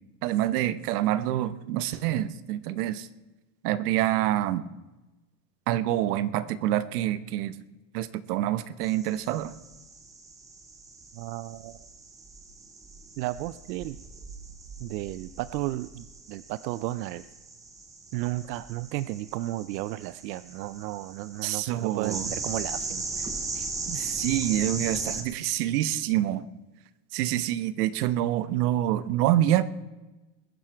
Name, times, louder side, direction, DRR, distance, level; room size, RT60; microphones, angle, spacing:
voice 1, 0.2-3.1 3.6-4.6 5.7-7.6 7.9-9.5 21.4-22.3 23.9-26.4 27.1-29.6, right 13 dB, 65° right, 15 dB, 0.9 m, -26 dB
sound 1, 8.8-25.2, right 3 dB, 5° right, 0.5 m, -38 dB
voice 2, 11.1-11.8 13.2-14.0 14.8-17.2 18.1-24.0, right 16 dB, 85° right, 15 dB, 0.6 m, -34 dB
21.5 x 9.8 x 4.5 m, 1.1 s
supercardioid pair, 170°, 48 cm